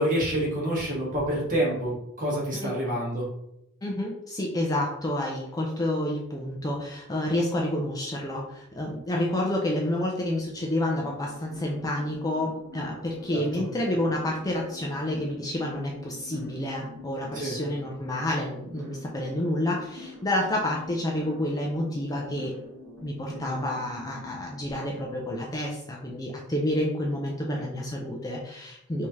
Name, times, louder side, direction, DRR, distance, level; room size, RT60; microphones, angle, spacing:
voice 1, 0.0-3.3 13.3-13.4 17.3-17.5 23.3-23.6, right 1 dB, 40° right, -4 dB, 1.3 m, -27 dB
voice 2, 3.8-22.5 23.0-29.1, left 1 dB, 15° left, -2 dB, 0.4 m, -29 dB
sound 1, 10.9-24.7, left 3 dB, 75° right, 1.3 m, -46 dB
3.1 x 2.7 x 3.5 m, 0.82 s
head